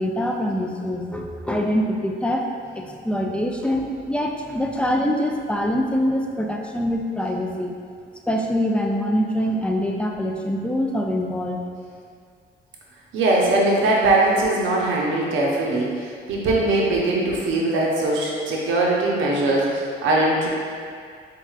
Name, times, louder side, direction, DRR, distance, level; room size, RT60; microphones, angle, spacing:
voice 1, 0.0-2.5 2.7-7.8 8.3-11.6, equal, 5° left, 0 dB, 0.4 m, -24 dB
voice 2, 13.1-20.5, right 2 dB, 80° right, -3 dB, 0.8 m, -21 dB
4.6 x 3.5 x 2.4 m, 2.1 s
cardioid pair, 90°, 20 cm